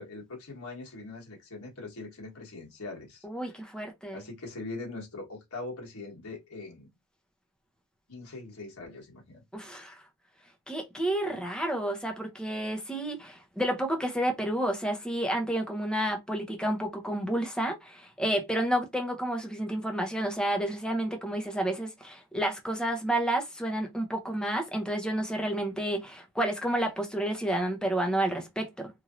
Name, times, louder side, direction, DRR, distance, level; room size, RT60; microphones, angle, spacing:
voice 1, 0.0-3.6 4.1-6.9 8.1-9.4, left 3 dB, 75° left, 1.4 m, -42 dB
voice 2, 3.2-4.2 9.5-10.0 10.7-28.9, right 1 dB, 5° left, 0.7 m, -30 dB
3.0 x 2.7 x 2.5 m
head